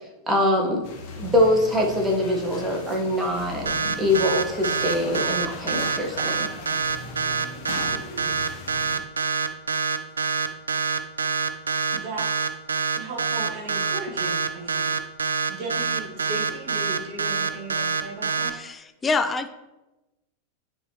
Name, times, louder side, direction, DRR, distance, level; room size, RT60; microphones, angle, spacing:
voice 1, 0.3-0.8 1.2-6.5, left 1 dB, 15° right, -1 dB, 1.4 m, -23 dB
sound 1, 0.8-9.0, left 3 dB, 45° left, 1.0 m, -38 dB
sound 2, 3.7-18.5, right 5 dB, 75° right, 0.4 m, -25 dB
voice 2, 11.9-12.5 12.9-15.0 15.5-18.6, right 2 dB, 45° right, -2 dB, 2.2 m, -36 dB
voice 3, 18.5-19.5, left 4 dB, 20° left, 10 dB, 0.4 m, -26 dB
9.8 x 4.3 x 3.1 m, 1.0 s
figure-of-eight pair, 90°, 0 cm